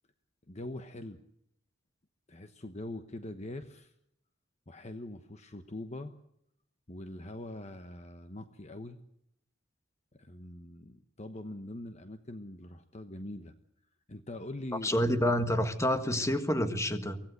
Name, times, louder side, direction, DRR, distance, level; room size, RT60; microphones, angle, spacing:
voice 1, 0.5-1.2 2.3-3.9 4.7-6.1 6.9-9.0 10.1-13.5 14.1-15.0, left 1 dB, 35° left, 1.1 m, -43 dB
voice 2, 14.8-17.2, equal, 15° left, 1.6 m, -28 dB
24.0 x 17.5 x 8.0 m
head